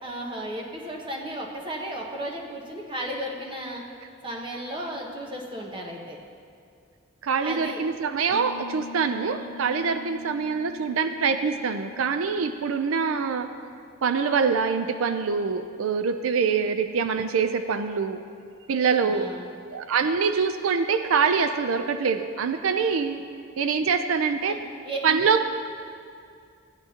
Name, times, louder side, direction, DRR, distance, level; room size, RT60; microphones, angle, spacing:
voice 1, 0.0-3.8 4.2-6.2 7.4-7.8 19.0-19.5 24.4-25.0, right 1 dB, 25° right, 0 dB, 1.1 m, -34 dB
voice 2, 7.2-13.5 14.0-18.2 18.7-19.3 19.7-23.3 23.6-24.6 25.0-25.4, right 5 dB, 85° right, 9 dB, 0.4 m, -24 dB
sound 1, 8.3-13.9, left 4 dB, 85° left, 0.6 m, -44 dB
16.0 x 10.5 x 2.9 m, 2.3 s
head